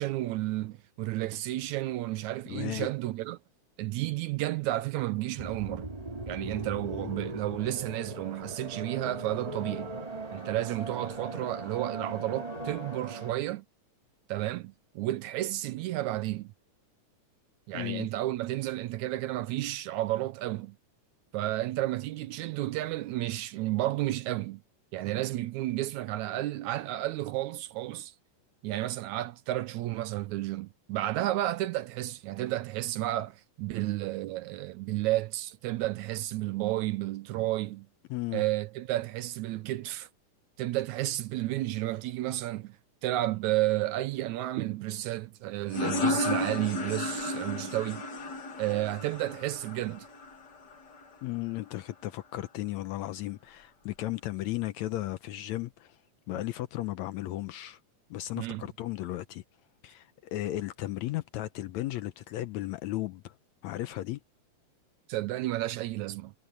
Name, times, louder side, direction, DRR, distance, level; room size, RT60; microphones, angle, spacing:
voice 1, 0.0-3.4 3.8-5.9 6.3-10.0 10.3-13.7 14.3-16.5 17.7-20.8 21.3-24.6 24.9-28.1 28.6-37.9 38.3-40.1 40.6-42.8 43.0-48.0 48.6-50.1 58.4-58.7 65.1-66.3, right 15 dB, 75° right, 1.9 m, -32 dB
voice 2, 2.5-2.9 7.0-7.1 17.7-18.1 38.1-38.4 51.2-56.0 56.3-57.8 58.1-59.4 59.8-63.3 63.6-64.2, left 15 dB, 75° left, 1.8 m, -35 dB
sound 1, 5.4-13.4, right 2 dB, 15° right, 2.2 m, -39 dB
sound 2, 45.7-51.1, left 2 dB, 35° left, 2.2 m, -33 dB
omnidirectional pair, 3.7 m